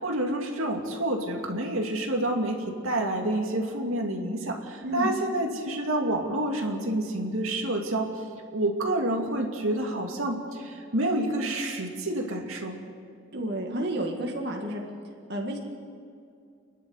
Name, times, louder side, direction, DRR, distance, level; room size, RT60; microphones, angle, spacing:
voice 1, 0.0-8.2 8.5-12.8, right 1 dB, 85° right, 1 dB, 2.5 m, -28 dB
voice 2, 4.8-5.2 13.3-14.8 15.3-15.6, right 1 dB, 50° right, 0 dB, 2.0 m, -30 dB
29.5 x 11.0 x 8.0 m, 2.3 s
head